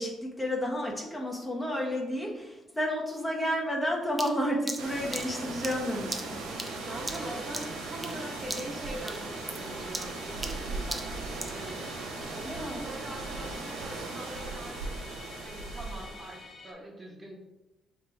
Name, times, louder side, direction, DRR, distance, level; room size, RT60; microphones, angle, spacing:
voice 1, 0.0-6.4 12.4-12.9, equal, 15° left, -2 dB, 1.1 m, -31 dB
sound 1, 4.2-8.2 8.5-8.8 9.1-11.6, right 1 dB, 15° right, 0.6 m, -39 dB
sound 2, 4.8-16.5, right 3 dB, 80° right, 0.6 m, -38 dB
Musical instrument, 6.5-16.7, left 4 dB, 40° left, 0.7 m, -49 dB
voice 2, 6.9-12.0 12.3-14.8 15.4-17.4, right 1 dB, 35° right, -1 dB, 1.0 m, -43 dB
3.3 x 2.9 x 4.6 m, 1.0 s
hypercardioid pair, 50°, 0 cm